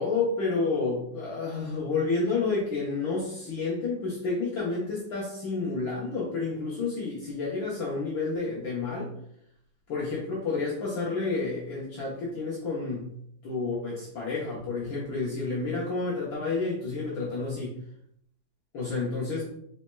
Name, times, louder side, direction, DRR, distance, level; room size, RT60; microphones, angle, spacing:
voice 1, 0.0-9.1 9.9-13.1 13.4-17.7 18.7-19.5, left 3 dB, 65° left, -7 dB, 1.6 m, -30 dB
4.2 x 4.2 x 2.2 m, 0.70 s
omnidirectional pair, 2.4 m